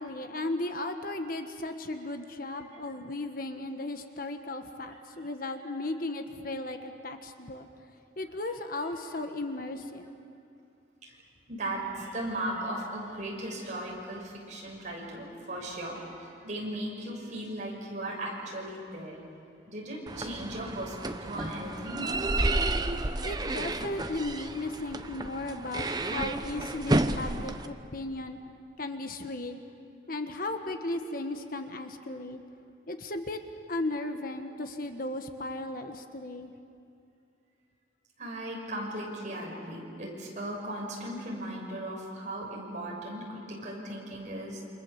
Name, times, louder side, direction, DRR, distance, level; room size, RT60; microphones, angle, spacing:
voice 1, 0.0-7.7 8.2-10.2 23.2-28.4 28.8-29.6 30.1-32.4 32.9-33.4 33.7-36.5, left 2 dB, 50° left, 6 dB, 1.4 m, -36 dB
voice 2, 11.5-19.2 19.7-22.1 38.2-44.6, right 1 dB, 40° right, -2 dB, 6.7 m, -37 dB
sound 1, 20.1-27.7, right 2 dB, 20° right, 0.9 m, -31 dB
28.5 x 26.0 x 7.2 m, 2.5 s
head